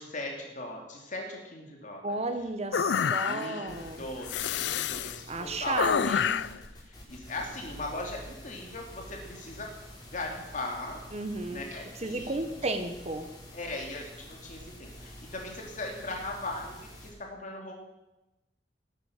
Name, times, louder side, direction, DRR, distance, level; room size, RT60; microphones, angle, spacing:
voice 1, 0.0-2.1 3.2-5.8 6.1-6.3 6.7-9.7 10.1-11.0 11.5-12.4 13.5-17.7, left 2 dB, 45° left, 0 dB, 3.1 m, -39 dB
voice 2, 2.0-4.0 5.3-6.4 11.1-11.6 12.0-13.3, right 2 dB, 40° right, 7 dB, 1.3 m, -33 dB
sound 1, 2.7-3.7 4.3-5.2 5.8-6.6, left 7 dB, 80° left, 0.4 m, -28 dB
sound 2, 3.7-17.1, left 1 dB, 25° left, 4.4 m, -48 dB
18.0 x 9.9 x 6.7 m, 0.97 s
head